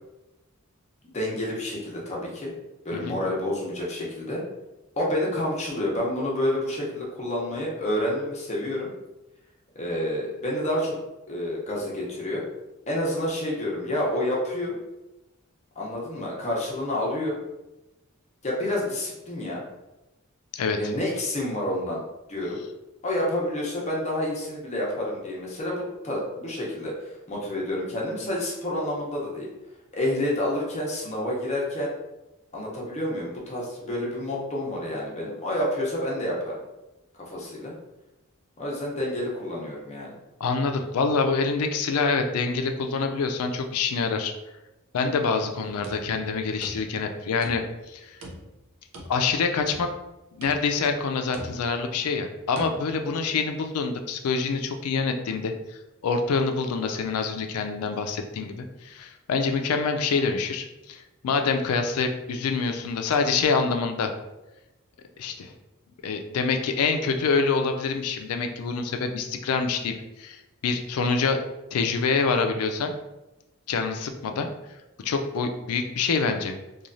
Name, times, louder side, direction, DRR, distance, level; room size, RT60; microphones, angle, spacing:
voice 1, 1.0-2.5 2.8-4.4 5.0-8.9 9.7-10.9 11.3-12.4 12.9-14.8 15.8-17.4 18.4-19.6 20.8-22.0 22.3-22.6 23.0-26.9 27.3-29.5 29.9-31.9 32.5-36.5 37.3-37.7 38.6-40.1 45.6-45.8, left 1 dB, 30° left, -3 dB, 0.7 m, -29 dB
voice 2, 20.5-20.9 40.4-44.3 44.9-48.2 49.1-49.9 50.3-64.1 65.2-65.5 66.0-71.4 71.7-72.9 73.7-74.5 75.0-76.6, left 4 dB, 90° left, 5 dB, 0.4 m, -26 dB
sound 1, 45.8-47.1 47.4-47.9 48.2-49.3 49.7-50.1 50.4-50.9 51.3-51.8 52.5-52.8, right 1 dB, 70° right, 0.6 m, -42 dB
3.0 x 2.3 x 2.5 m, 0.99 s
head